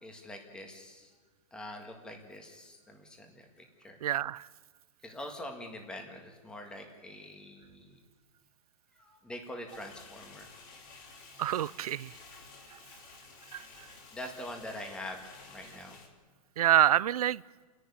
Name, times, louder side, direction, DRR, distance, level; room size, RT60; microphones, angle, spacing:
voice 1, 0.0-1.1 1.5-3.4 3.8-4.0 5.0-7.9 9.0-10.5 14.1-15.2 15.5-16.0, left 1 dB, 5° left, 3 dB, 1.8 m, -44 dB
voice 2, 4.0-4.5 11.4-12.1 13.5-13.6 16.6-17.4, right 12 dB, 80° right, 22 dB, 0.6 m, -26 dB
sound 1, 9.7-16.1, left 4 dB, 35° left, 3.0 m, -52 dB
30.0 x 11.0 x 10.0 m, 1.4 s
supercardioid pair, 175°, 19 cm